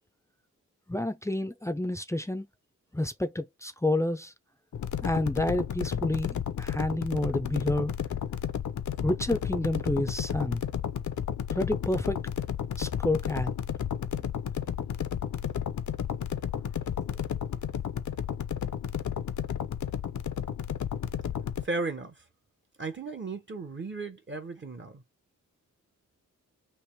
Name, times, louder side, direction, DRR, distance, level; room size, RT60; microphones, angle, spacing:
voice 1, 0.9-2.5 2.9-4.3 5.0-7.9 9.0-10.6 11.5-12.2 12.8-13.5, left 1 dB, 10° left, 0.5 m, -29 dB
sound 1, 4.7-21.6, left 9 dB, 65° left, 0.6 m, -32 dB
voice 2, 21.6-22.1 22.8-25.0, right 3 dB, 35° right, 0.9 m, -35 dB
3.3 x 3.0 x 4.4 m
wide cardioid pair, 135°, 32 cm